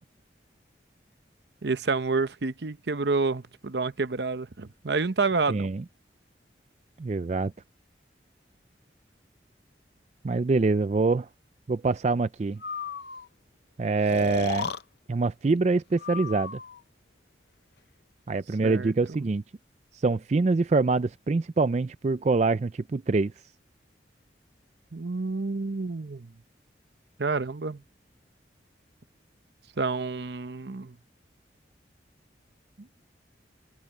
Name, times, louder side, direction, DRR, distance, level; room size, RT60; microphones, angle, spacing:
voice 1, 1.6-5.7 18.6-19.3 24.9-26.3 27.2-27.8 29.8-30.9 32.8-32.9, right 4 dB, 70° right, 0.8 m, -29 dB
voice 2, 5.5-5.8 7.0-7.5 10.2-11.3 11.7-12.6 13.8-14.7 15.1-16.6 18.3-19.4 19.9-23.3, right 3 dB, 40° right, 0.4 m, -25 dB
Breathing, 12.6-13.3 14.1-14.8 16.0-16.8, left 5 dB, 65° left, 0.7 m, -34 dB
head